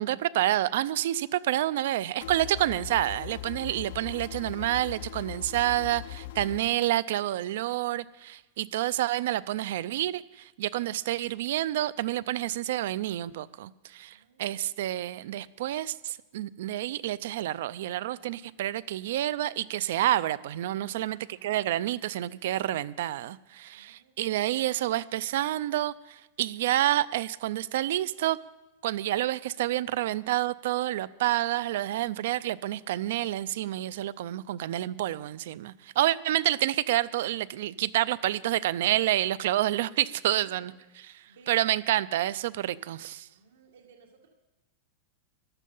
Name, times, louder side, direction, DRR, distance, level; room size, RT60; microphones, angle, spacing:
voice 1, 0.0-28.4 28.8-40.7 41.5-43.3, right 14 dB, 70° right, 0.5 m, -28 dB
sound 1, 2.2-6.6, left 14 dB, 65° left, 0.7 m, -40 dB
voice 2, 14.1-14.7 20.9-21.5 23.7-24.3 30.0-30.3 40.4-40.7 41.3-41.6 43.3-44.3, right 6 dB, 90° right, 1.9 m, -58 dB
15.0 x 11.0 x 5.5 m
supercardioid pair, 155°, 0 cm